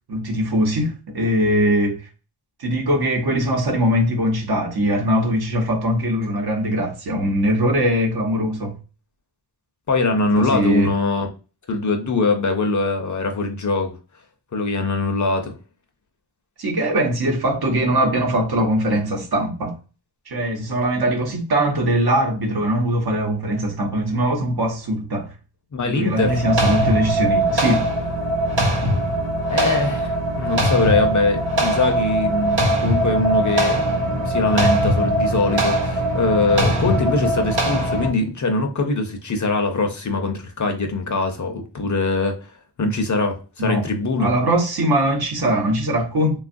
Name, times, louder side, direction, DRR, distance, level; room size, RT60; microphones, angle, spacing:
voice 1, 0.1-2.0 2.6-8.7 10.4-10.9 16.6-19.7 20.3-25.3 25.9-27.9 43.6-43.8 44.2-46.4, right 1 dB, 60° right, 0.9 m, -21 dB
voice 2, 9.9-11.3 11.7-13.9 14.5-15.5 25.7-26.4 29.5-42.4 42.8-44.3, left 3 dB, 45° left, 0.6 m, -22 dB
sound 1, 26.2-38.1, right 1 dB, 85° right, 1.1 m, -21 dB
3.3 x 2.3 x 2.5 m
wide cardioid pair, 90°, 43 cm